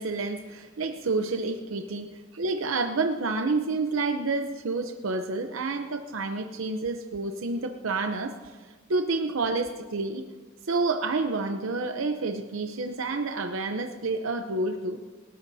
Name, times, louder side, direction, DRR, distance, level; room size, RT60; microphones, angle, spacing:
voice 1, 0.0-8.6 8.9-10.2 10.6-15.0, right 3 dB, 80° right, 6 dB, 0.7 m, -29 dB
28.0 x 13.5 x 2.8 m, 1.4 s
head